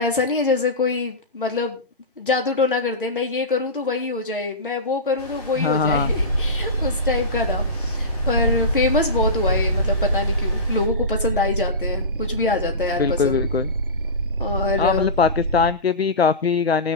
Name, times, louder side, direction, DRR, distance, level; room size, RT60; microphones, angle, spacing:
voice 1, 0.0-1.8 2.2-13.4 14.4-15.1, left 3 dB, 60° left, 3 dB, 3.7 m, -24 dB
Stream, 5.2-10.9, equal, 40° left, 4.3 m, -27 dB
voice 2, 5.6-6.1 13.0-13.7 14.8-16.9, left 5 dB, 85° left, 15 dB, 0.7 m, -21 dB
sound 1, 5.9-15.7, right 3 dB, 60° right, 1.0 m, -26 dB
19.0 x 7.0 x 4.1 m, 0.30 s
figure-of-eight pair, 165°, 30 cm